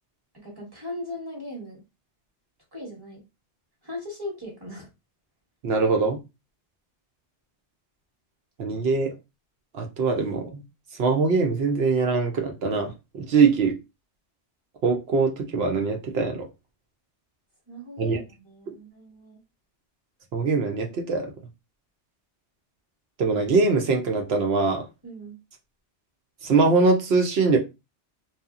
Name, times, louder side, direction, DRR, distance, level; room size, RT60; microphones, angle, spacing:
voice 1, 0.3-1.8 2.7-3.2 3.8-4.9 17.7-19.4 25.0-25.4, left 1 dB, 20° right, -3 dB, 1.0 m, -38 dB
voice 2, 5.6-6.2 8.6-9.1 9.7-10.6 11.0-13.7 14.8-16.5 18.0-18.2 20.3-21.3 23.2-24.8 26.4-27.6, right 4 dB, 65° right, 3 dB, 0.8 m, -22 dB
2.8 x 2.3 x 2.4 m, 0.25 s
omnidirectional pair, 1.2 m